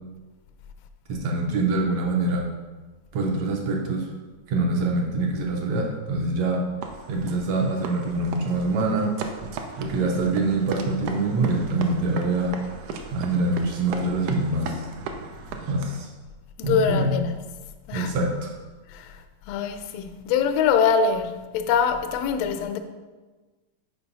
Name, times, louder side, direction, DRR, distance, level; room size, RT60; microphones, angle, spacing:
voice 1, 1.1-2.5 3.1-4.1 4.5-6.6 7.1-9.1 9.8-12.5 13.1-14.8 15.7-16.1 16.6-17.2 17.9-18.5, right 2 dB, 75° right, 1.8 m, -24 dB
sound 1, 6.8-16.1, right 5 dB, 90° right, 2.1 m, -37 dB
voice 2, 16.6-17.5 17.9-18.1 18.9-19.2 19.5-22.8, left 6 dB, 85° left, 1.4 m, -24 dB
5.8 x 4.5 x 5.4 m
omnidirectional pair, 3.5 m